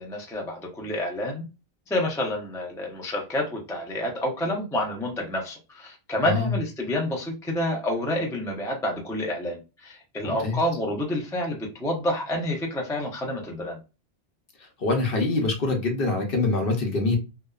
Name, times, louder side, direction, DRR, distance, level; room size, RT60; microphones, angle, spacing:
voice 1, 0.0-1.4 1.9-13.8, left 1 dB, 5° left, 0 dB, 0.3 m, -28 dB
voice 2, 6.2-6.5 10.2-10.6 14.6-17.2, left 3 dB, 55° left, 2 dB, 0.8 m, -25 dB
2.6 x 2.2 x 2.2 m, 0.29 s
omnidirectional pair, 1.2 m